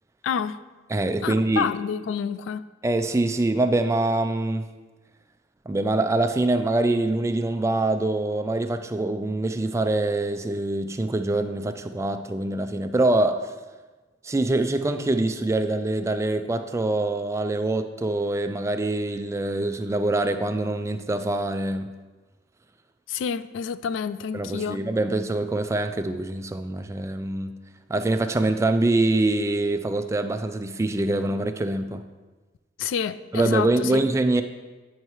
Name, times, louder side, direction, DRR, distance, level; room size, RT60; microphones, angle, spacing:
voice 1, 0.2-0.6 1.2-2.6 23.1-24.8 32.8-34.0, left 7 dB, 85° left, 0.3 m, -28 dB
voice 2, 0.9-1.7 2.8-4.6 5.7-13.5 14.2-21.9 24.3-27.5 27.9-32.0 33.3-34.4, right 2 dB, 15° right, 0.3 m, -24 dB
9.5 x 5.5 x 3.0 m
head